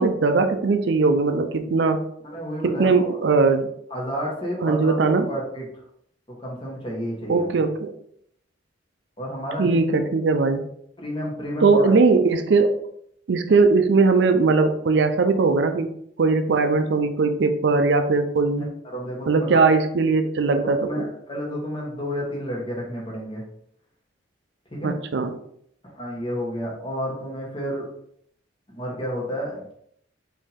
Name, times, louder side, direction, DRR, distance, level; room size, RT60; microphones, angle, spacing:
voice 1, 0.0-2.0 2.6-3.7 4.6-5.3 7.3-7.9 9.6-10.7 11.6-12.8 13.3-15.9 16.2-18.7 19.3-20.9 24.8-25.3, right 4 dB, 65° right, 8 dB, 0.4 m, -19 dB
voice 2, 2.2-3.2 3.9-5.0 5.2-5.6 6.3-7.6 9.2-10.0 11.0-11.9 18.6-18.7 18.9-19.7 20.5-23.4 24.7-25.0 25.9-27.8 28.7-29.7, equal, 25° left, -3 dB, 1.4 m, -31 dB
5.3 x 2.7 x 3.5 m, 0.69 s
head